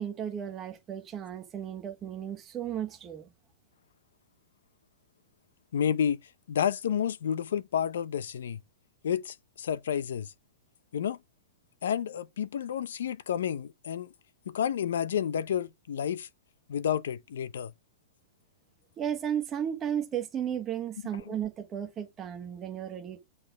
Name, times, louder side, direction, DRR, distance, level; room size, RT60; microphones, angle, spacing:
voice 1, 0.0-3.3 19.0-23.2, right 9 dB, 15° right, 1.2 m, -34 dB
voice 2, 5.7-6.2 6.5-8.6 9.0-10.3 10.9-11.2 11.8-14.1 14.5-16.3 16.7-17.7 21.3-21.4, left 8 dB, 80° left, 0.7 m, -30 dB
8.6 x 4.2 x 5.8 m
supercardioid pair, 175°, 0 cm